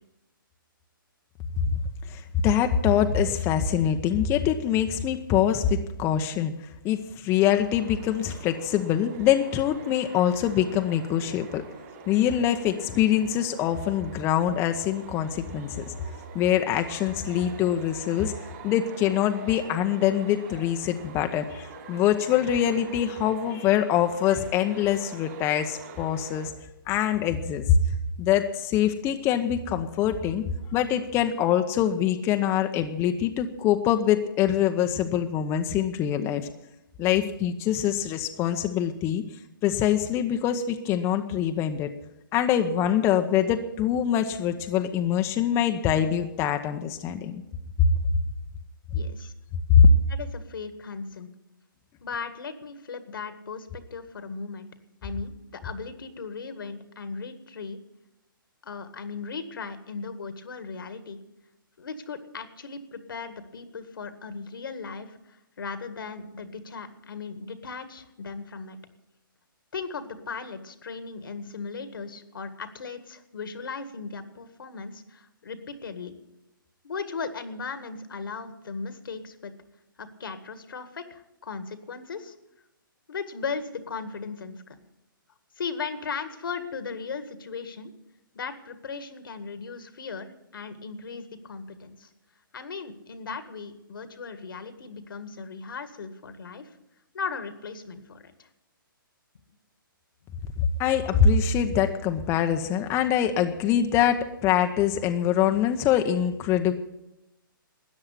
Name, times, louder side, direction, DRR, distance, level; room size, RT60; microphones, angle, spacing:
voice 1, 2.1-6.5 6.8-11.6 12.1-15.8 16.3-18.3 18.6-26.5 26.9-27.8 28.2-30.4 30.7-36.5 37.0-39.2 39.6-41.9 42.3-47.4 47.8-47.9 49.8-49.9 100.6-106.7, left 9 dB, 20° left, 5 dB, 0.8 m, -24 dB
sound 1, 7.4-26.5, right 4 dB, 45° right, 4.1 m, -45 dB
voice 2, 48.9-49.3 50.1-51.3 52.0-54.7 55.0-57.8 58.6-61.2 61.8-68.8 69.7-76.2 76.8-79.5 80.0-82.3 83.1-84.8 85.6-87.9 88.3-92.1 92.5-96.7 97.1-98.5, left 5 dB, 75° left, 10 dB, 1.9 m, -37 dB
13.5 x 9.7 x 9.7 m, 0.89 s
hypercardioid pair, 140°, 12 cm